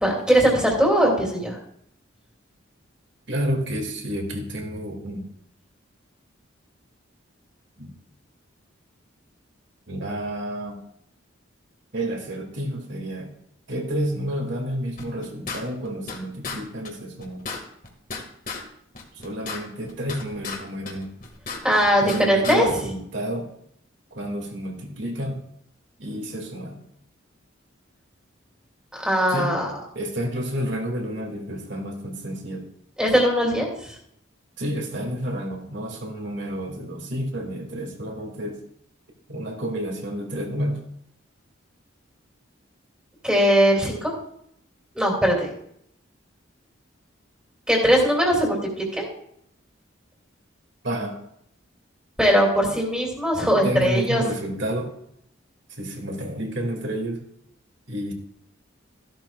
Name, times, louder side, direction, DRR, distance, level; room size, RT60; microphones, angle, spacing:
voice 1, 0.0-1.6 21.6-22.8 29.0-29.7 33.0-33.9 43.2-44.1 44.9-45.5 47.7-49.1 52.2-54.2, equal, 5° right, -1 dB, 2.4 m, -20 dB
voice 2, 3.3-5.3 7.8-7.9 9.9-10.8 11.9-13.3 13.7-17.5 19.1-21.1 22.0-23.5 24.1-25.4 26.0-26.8 29.3-29.6 29.9-32.7 34.6-38.6 39.3-40.8 50.8-51.1 53.5-54.9 55.8-57.2 57.9-58.1, equal, 60° right, 2 dB, 2.2 m, -30 dB
sound 1, 15.0-16.2 16.4-16.6 16.8-16.9 17.2-18.6 18.9-20.6 20.8-22.2 22.4-22.6, left 4 dB, 40° left, 1.7 m, -34 dB
15.0 x 11.5 x 2.4 m, 0.71 s
head